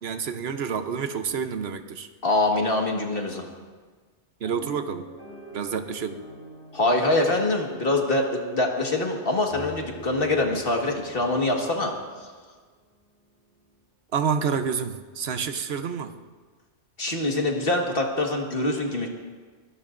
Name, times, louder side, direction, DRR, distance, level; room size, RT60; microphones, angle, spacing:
voice 1, 0.0-2.1 4.4-5.1 5.5-6.2 14.1-16.1, right 6 dB, 60° right, 8 dB, 1.1 m, -28 dB
voice 2, 2.2-3.5 6.7-11.9 12.2-12.3 17.0-19.1, left 2 dB, 50° left, 1 dB, 1.9 m, -24 dB
sound 1, 4.4-12.5 13.1-13.2 13.5-13.8, equal, 65° left, 4.0 m, -45 dB
23.5 x 18.0 x 2.6 m, 1.5 s
omnidirectional pair, 1.2 m